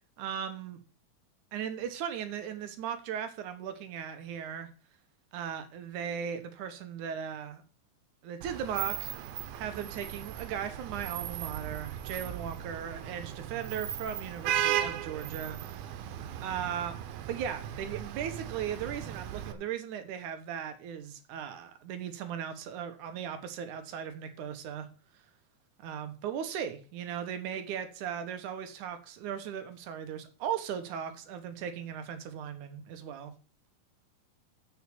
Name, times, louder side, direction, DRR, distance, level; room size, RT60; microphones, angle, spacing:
voice 1, 0.2-0.8 1.5-4.7 5.3-7.6 8.2-9.1 9.6-16.0 16.4-17.0 17.3-24.9 25.8-33.3, right 8 dB, 65° right, 2.5 m, -37 dB
Vehicle horn car horn honking / Traffic noise roadway noise, 8.4-19.5, right 11 dB, 85° right, 2.8 m, -37 dB
7.6 x 6.6 x 7.7 m
omnidirectional pair, 4.1 m